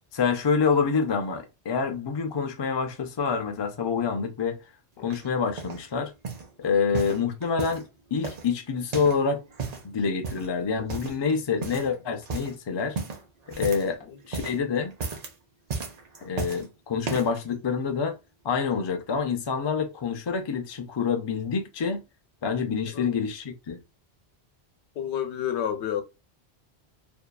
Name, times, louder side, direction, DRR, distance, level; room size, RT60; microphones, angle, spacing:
voice 1, 0.1-4.6 5.0-6.1 6.6-9.4 9.8-13.0 13.6-14.0 14.3-14.9 16.2-18.2 18.4-22.0 22.4-23.8, left 5 dB, 45° left, 0.3 m, -27 dB
sound 1, 5.1-5.8 6.2-6.5 6.9-7.9 8.2-9.2 9.5-9.9 10.2-10.5 10.9-11.3 11.6-11.9 12.2-12.5 12.9-14.0 14.2-14.6 14.9-15.3 15.7-16.6 17.0-17.4 18.1-18.2, right 4 dB, 45° right, 0.6 m, -34 dB
voice 2, 25.0-26.0, left 9 dB, 90° left, 0.9 m, -30 dB
2.7 x 2.3 x 2.2 m
omnidirectional pair, 1.1 m